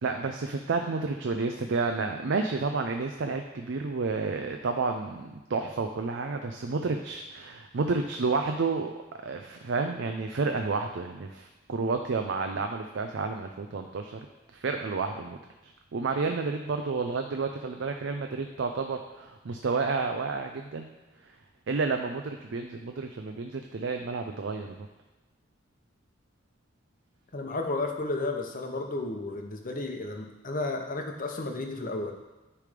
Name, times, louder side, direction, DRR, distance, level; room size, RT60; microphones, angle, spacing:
voice 1, 0.0-8.9 9.2-14.2 14.5-15.4 15.9-20.9 21.7-24.8, right 4 dB, 65° right, 5 dB, 0.5 m, -30 dB
voice 2, 27.3-32.2, left 2 dB, 45° left, 3 dB, 0.8 m, -33 dB
9.9 x 3.4 x 5.0 m, 1.1 s
head